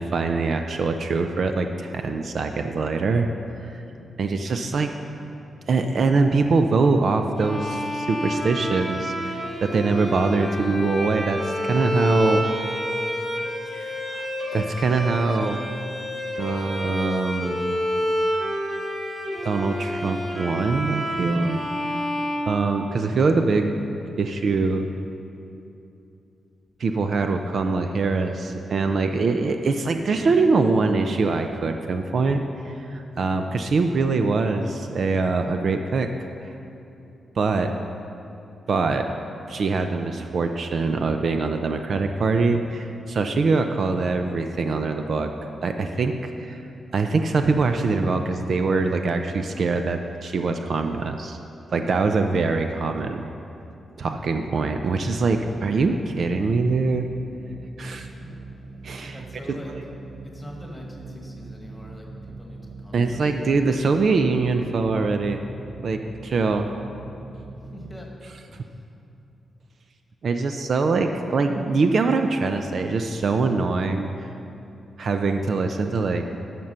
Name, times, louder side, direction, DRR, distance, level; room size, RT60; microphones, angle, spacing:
voice 1, 0.0-3.3 3.6-3.7 4.2-4.9 5.7-12.4 13.7-14.3 14.5-15.6 16.4-17.6 19.4-21.6 22.5-23.7 24.2-24.9 26.8-36.1 36.4-36.5 37.4-37.7 38.7-39.1 39.5-45.3 45.6-46.1 46.4-46.6 46.9-51.4 51.7-53.3 54.0-57.1 57.8-58.1 58.8-59.2 59.7-59.8 62.9-65.4 65.8-66.7 70.2-74.1 75.0-76.2, right 4 dB, 50° right, 6 dB, 0.5 m, -23 dB
Bowed string instrument, 7.4-23.2, equal, 15° right, 1.8 m, -29 dB
sound 1, 54.8-68.0, right 3 dB, 70° right, 1.1 m, -41 dB
voice 2, 59.1-59.7 60.2-63.2 67.7-68.1 68.5-68.7, left 1 dB, 10° left, -1 dB, 1.4 m, -42 dB
12.5 x 6.0 x 5.5 m, 2.8 s
wide cardioid pair, 140°, 0 cm